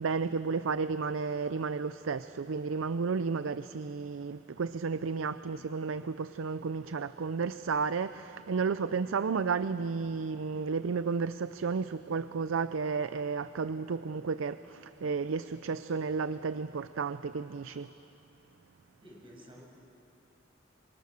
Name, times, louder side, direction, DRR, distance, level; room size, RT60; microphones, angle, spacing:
voice 1, 0.0-17.9, right 5 dB, 80° right, 0.5 m, -32 dB
voice 2, 19.0-19.6, equal, 25° right, 6.5 m, -51 dB
25.0 x 25.0 x 6.8 m
head